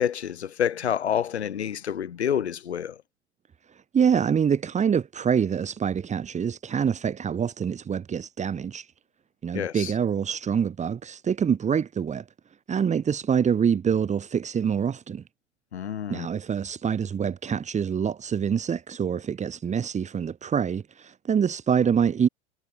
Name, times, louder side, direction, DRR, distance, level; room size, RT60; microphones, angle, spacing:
voice 1, 0.0-3.0 9.5-9.9 15.7-16.3, left 9 dB, 70° left, 2.9 m, -28 dB
voice 2, 3.9-8.9 9.4-12.2 12.7-15.2 16.1-22.3, right 7 dB, 20° right, 6.5 m, -25 dB
figure-of-eight pair, 95°, 35 cm